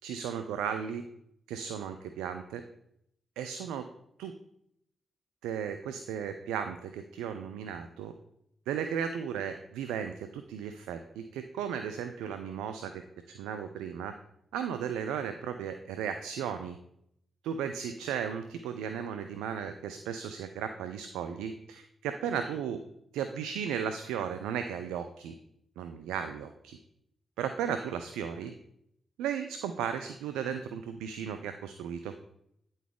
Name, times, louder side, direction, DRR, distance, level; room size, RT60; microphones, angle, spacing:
voice 1, 0.0-1.1 1.5-2.6 3.4-3.9 4.2-4.3 5.4-8.1 8.7-13.0 13.3-14.1 14.5-16.8 17.4-22.8 23.1-25.3 25.8-26.8 27.4-28.5 29.2-32.1, right 8 dB, 90° right, 8 dB, 0.3 m, -35 dB
9.3 x 3.9 x 3.6 m, 0.76 s
supercardioid pair, 40°, 0 cm